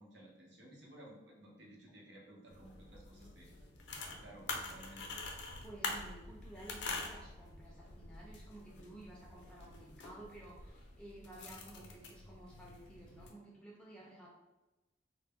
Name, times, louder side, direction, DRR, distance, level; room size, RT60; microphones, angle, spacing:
voice 1, 0.0-3.5 4.0-5.2, right 1 dB, 75° right, -3 dB, 0.7 m, -56 dB
sound 1, 2.5-13.3, left 3 dB, 75° left, 0.4 m, -46 dB
voice 2, 5.6-14.3, right 1 dB, 5° left, -4 dB, 0.4 m, -53 dB
2.1 x 2.0 x 3.4 m, 1.0 s
head